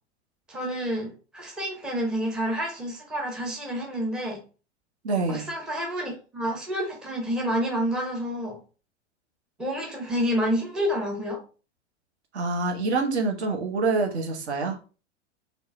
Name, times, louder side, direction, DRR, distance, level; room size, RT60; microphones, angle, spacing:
voice 1, 0.5-4.4 5.3-8.6 9.6-11.4, equal, ahead, 0.5 m, -29 dB
voice 2, 5.0-5.5 12.3-14.8, right 3 dB, 65° right, 0.9 m, -26 dB
3.6 x 2.0 x 2.4 m
figure-of-eight pair, 100°, 36 cm